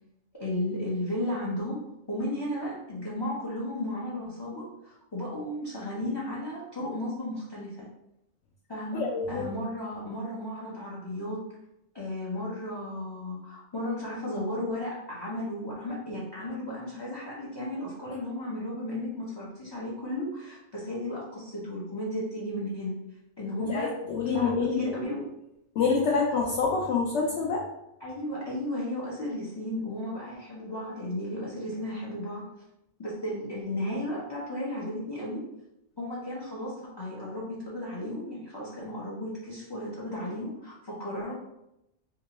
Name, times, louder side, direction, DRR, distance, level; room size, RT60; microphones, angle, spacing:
voice 1, 0.4-1.8 2.1-7.9 8.7-9.0 9.3-11.4 11.9-22.9 23.4-23.9 24.3-25.2 28.0-32.4 33.0-35.4 36.0-41.3, left 1 dB, 30° left, -6 dB, 0.5 m, -34 dB
voice 2, 8.9-9.4 23.6-24.9 25.8-27.6, left 4 dB, 70° left, -3 dB, 0.8 m, -27 dB
3.7 x 2.3 x 2.9 m, 0.86 s
omnidirectional pair, 1.3 m